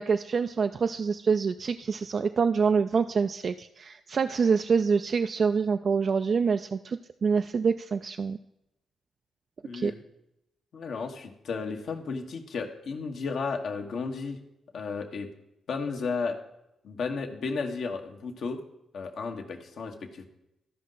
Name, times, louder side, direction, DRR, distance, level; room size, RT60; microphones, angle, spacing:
voice 1, 0.0-8.4 9.7-9.9, right 5 dB, 55° right, 9 dB, 0.3 m, -26 dB
voice 2, 9.6-10.0 10.7-14.4 14.7-15.3 15.7-16.4 16.8-18.6 18.9-20.3, left 4 dB, 70° left, 4 dB, 1.1 m, -33 dB
13.5 x 5.4 x 3.9 m, 0.87 s
supercardioid pair, 55°, 0 cm